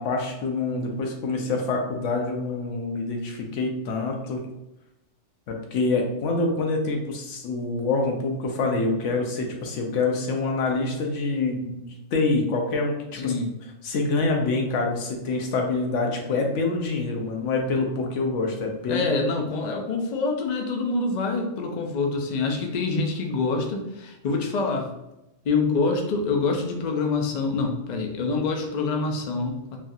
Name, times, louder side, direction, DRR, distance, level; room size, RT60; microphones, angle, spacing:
voice 1, 0.0-4.4 5.5-13.3 13.8-19.1, left 3 dB, 80° left, 2 dB, 1.0 m, -26 dB
voice 2, 13.1-13.5 18.9-24.9 25.4-29.8, left 3 dB, 60° left, 2 dB, 0.4 m, -26 dB
3.3 x 2.3 x 2.6 m, 0.92 s
omnidirectional pair, 1.2 m